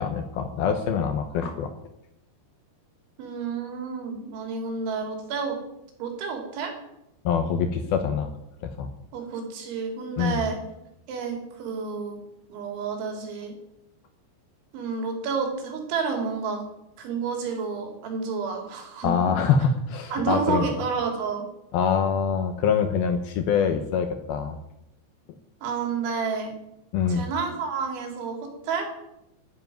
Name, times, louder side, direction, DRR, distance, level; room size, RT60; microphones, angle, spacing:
voice 1, 0.0-1.7 7.2-8.3 8.6-8.9 10.2-10.4 19.0-20.7 21.7-24.6 26.9-27.2, left 6 dB, 75° left, 7 dB, 2.5 m, -24 dB
voice 2, 3.2-5.6 6.0-6.7 9.1-10.6 11.1-12.2 12.5-13.5 14.7-16.6 17.0-19.3 20.1-21.4 25.6-26.5 27.1-28.9, right 5 dB, 85° right, 3 dB, 5.4 m, -30 dB
12.5 x 10.5 x 9.3 m, 0.87 s
omnidirectional pair, 5.3 m